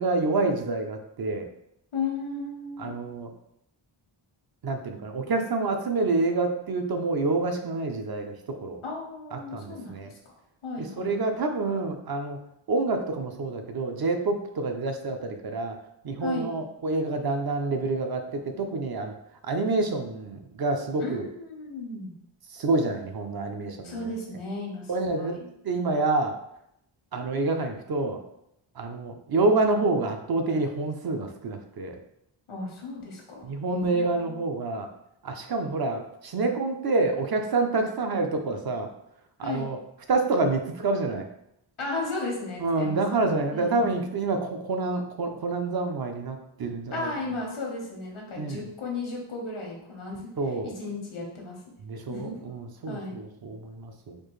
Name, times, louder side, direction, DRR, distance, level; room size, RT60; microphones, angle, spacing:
voice 1, 0.0-1.5 2.8-3.3 4.6-8.8 9.3-10.1 11.0-12.4 12.7-15.8 16.0-19.1 19.4-21.3 22.5-24.0 24.9-25.4 25.6-26.3 27.1-28.2 28.8-31.9 33.4-34.9 35.2-38.9 39.4-39.8 40.1-41.3 42.6-47.1 48.4-48.6 50.4-50.7 51.9-54.2, right 3 dB, 50° right, 5 dB, 0.5 m, -27 dB
voice 2, 1.9-2.9 8.8-10.3 10.6-11.2 16.2-16.5 21.0-22.1 23.8-25.5 32.5-34.4 39.4-39.7 41.8-44.1 46.9-51.6 52.1-52.4 52.9-53.2, left 3 dB, 90° left, -1 dB, 1.2 m, -35 dB
4.4 x 2.5 x 3.1 m, 0.77 s
wide cardioid pair, 125°, 48 cm